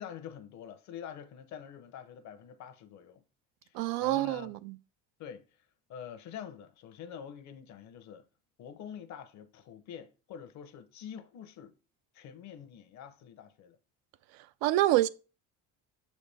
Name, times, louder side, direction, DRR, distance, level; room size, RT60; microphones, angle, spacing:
voice 1, 0.0-3.2 3.6-4.5 5.2-5.5 5.9-8.3 8.6-11.7 12.1-13.8, left 8 dB, 50° left, 0.8 m, -46 dB
voice 2, 3.7-4.7 14.6-15.1, right 15 dB, 80° right, 0.5 m, -27 dB
7.1 x 4.2 x 3.4 m
cardioid pair, 165°, 36 cm